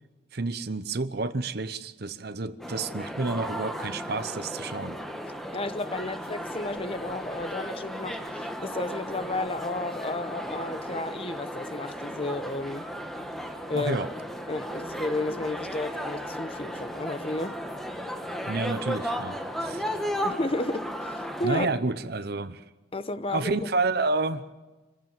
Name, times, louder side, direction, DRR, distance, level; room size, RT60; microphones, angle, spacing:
voice 1, 0.3-5.0 13.7-14.1 18.5-20.0 21.4-22.6 23.3-24.4, right 3 dB, 55° right, 0.8 m, -30 dB
sound 1, 2.6-21.5, equal, ahead, 1.4 m, -35 dB
voice 2, 5.5-12.9 13.7-14.0 14.5-17.6 20.2-21.7 22.9-23.7, left 2 dB, 30° left, 0.9 m, -32 dB
26.5 x 15.0 x 7.2 m
head